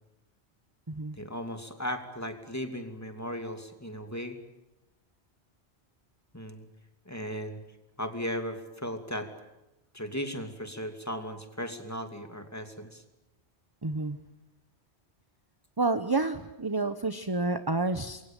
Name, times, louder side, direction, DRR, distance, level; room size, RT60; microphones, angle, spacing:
voice 1, 1.1-4.4 6.3-6.7 7.0-7.6 8.0-9.3 9.9-13.0, equal, 15° left, 6 dB, 2.7 m, -36 dB
voice 2, 13.8-14.2 15.8-18.2, right 3 dB, 20° right, 10 dB, 1.0 m, -29 dB
27.5 x 23.0 x 9.0 m, 0.94 s
omnidirectional pair, 1.1 m